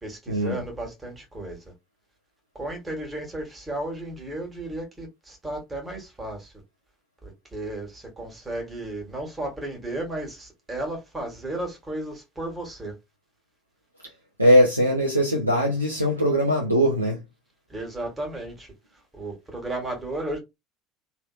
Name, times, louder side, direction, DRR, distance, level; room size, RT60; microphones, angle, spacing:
voice 1, 0.0-1.7 2.5-6.5 7.2-12.9 17.7-20.4, right 1 dB, 15° right, 1.6 m, -34 dB
voice 2, 14.4-17.2, equal, 85° right, 0.5 m, -20 dB
3.2 x 2.8 x 2.3 m
figure-of-eight pair, 65°, 0 cm